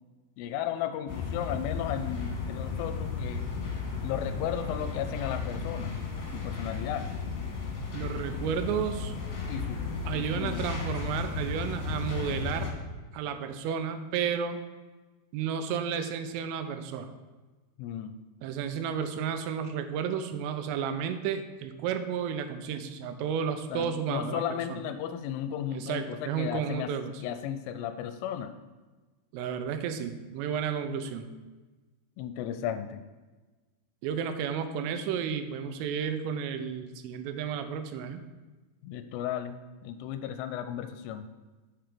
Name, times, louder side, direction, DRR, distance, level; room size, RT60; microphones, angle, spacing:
voice 1, 0.4-3.5 4.0-5.9 6.3-7.1 9.5-9.8 10.1-10.6 17.8-18.2 23.7-26.9 27.2-28.5 32.2-33.1 38.8-41.3, left 10 dB, 85° left, 10 dB, 3.0 m, -35 dB
sound 1, 1.1-12.7, left 5 dB, 65° left, 2.7 m, -34 dB
voice 2, 7.9-9.1 10.1-12.7 13.1-14.6 15.3-17.1 18.4-24.8 25.7-27.2 29.3-31.3 34.0-38.2, right 7 dB, 85° right, 8 dB, 3.2 m, -32 dB
6.9 x 5.9 x 5.0 m, 1.3 s
omnidirectional pair, 5.7 m